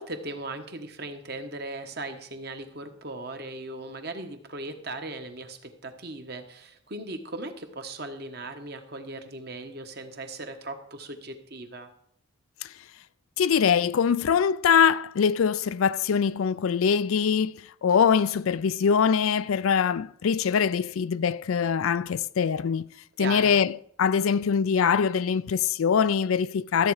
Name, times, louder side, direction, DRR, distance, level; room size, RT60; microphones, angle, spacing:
voice 1, 0.0-11.9 23.2-23.6, right 2 dB, 50° right, 1.3 m, -38 dB
voice 2, 13.4-22.9 23.2-26.9, left 7 dB, 85° left, 0.4 m, -23 dB
13.5 x 8.3 x 4.8 m
head